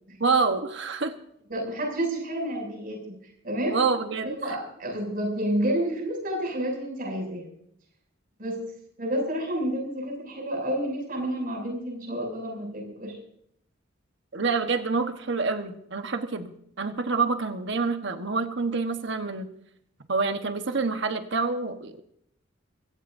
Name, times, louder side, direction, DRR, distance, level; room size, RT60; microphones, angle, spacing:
voice 1, 0.2-1.1 3.7-4.4 14.3-19.5 20.1-22.0, right 4 dB, 60° right, 7 dB, 1.2 m, -27 dB
voice 2, 1.5-3.8 4.2-7.5 8.4-8.7 9.0-13.2, right 1 dB, 45° right, 1 dB, 7.0 m, -30 dB
25.0 x 17.0 x 2.7 m, 0.72 s
head